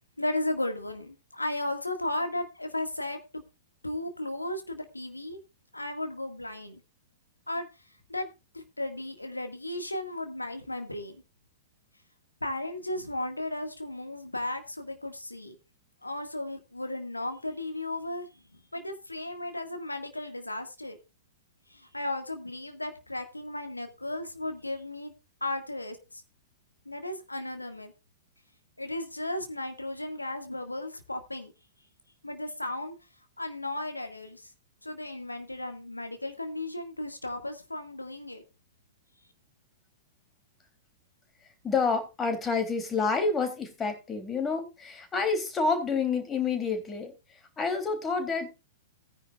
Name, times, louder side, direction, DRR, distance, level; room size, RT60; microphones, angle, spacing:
voice 1, 0.2-3.4 3.8-5.4 5.7-6.8 7.5-7.7 8.1-8.3 8.5-11.2 12.4-15.6 16.0-18.4 18.7-21.0 21.7-25.1 25.4-26.2 26.9-27.9 28.8-31.5 32.2-33.0 33.4-34.5 34.8-38.4, left 1 dB, 85° left, 6 dB, 2.0 m, -35 dB
voice 2, 41.6-47.1 47.6-48.5, left 4 dB, 15° left, 6 dB, 3.3 m, -28 dB
18.0 x 10.0 x 2.5 m, 0.27 s
figure-of-eight pair, 105°, 0 cm